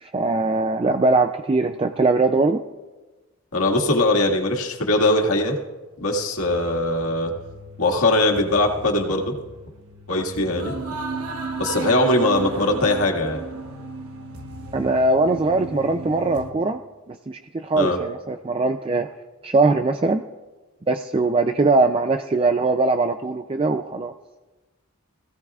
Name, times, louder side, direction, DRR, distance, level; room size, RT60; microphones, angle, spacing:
voice 1, 0.0-2.6 14.7-16.8 17.1-19.1 19.4-20.2 20.9-24.1, right 3 dB, 25° right, 7 dB, 0.4 m, -21 dB
voice 2, 3.5-5.6 6.0-7.3 7.8-9.3 10.1-10.8 11.6-13.4 17.7-18.0, left 2 dB, 80° left, 1 dB, 1.9 m, -21 dB
sound 1, 6.4-16.5, right 3 dB, 80° right, 1.1 m, -35 dB
21.0 x 16.0 x 2.4 m, 1.2 s
head